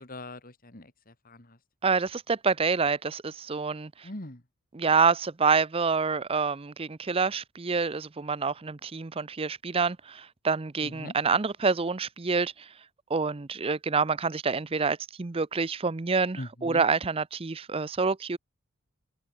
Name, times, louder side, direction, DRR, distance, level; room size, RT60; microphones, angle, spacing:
voice 1, 0.0-1.6 4.0-4.4 10.8-11.1 16.3-16.8, left 1 dB, 40° left, 2.7 m, -41 dB
voice 2, 1.8-4.1 4.7-12.7 13.1-18.4, right 5 dB, 25° right, 0.5 m, -27 dB
open air
head